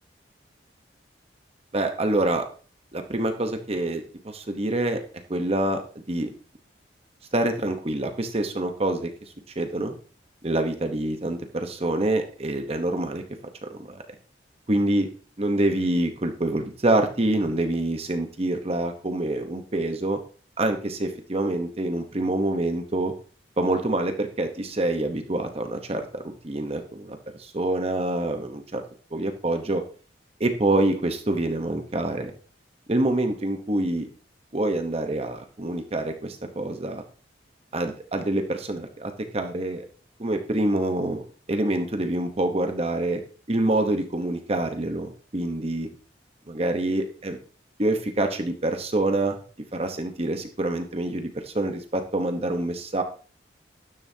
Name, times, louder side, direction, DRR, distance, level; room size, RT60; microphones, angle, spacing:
voice 1, 1.7-2.4 2.9-5.0 5.3-6.3 7.3-10.0 10.4-13.2 13.6-14.0 14.7-15.1 15.4-20.2 20.6-23.1 23.6-28.8 29.1-29.8 30.4-32.3 32.9-34.1 34.5-37.0 37.7-39.8 40.2-41.2 41.5-43.2 43.5-45.9 46.5-47.4 47.8-49.4 49.7-53.0, right 1 dB, 35° right, 6 dB, 0.9 m, -26 dB
12.5 x 10.5 x 2.8 m, 0.40 s
head